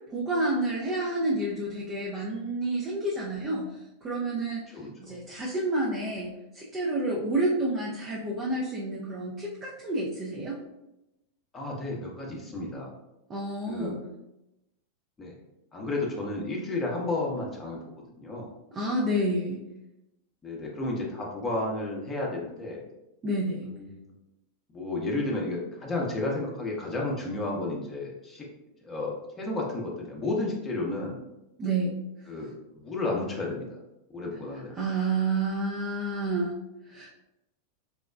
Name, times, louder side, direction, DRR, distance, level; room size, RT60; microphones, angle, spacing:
voice 1, 0.1-4.6 5.0-10.6 13.3-14.0 18.7-19.6 23.2-23.7 31.6-31.9 34.8-36.6 36.9-37.1, right 2 dB, 25° right, -4 dB, 0.6 m, -29 dB
voice 2, 4.7-5.2 11.5-12.9 13.7-14.0 15.2-15.3 15.7-18.5 20.4-22.8 23.6-24.1 24.7-28.5 28.8-31.2 32.3-33.7 34.1-34.7, left 2 dB, 20° left, -2 dB, 0.8 m, -32 dB
4.2 x 2.2 x 2.3 m, 0.91 s
figure-of-eight pair, 90°, 0 cm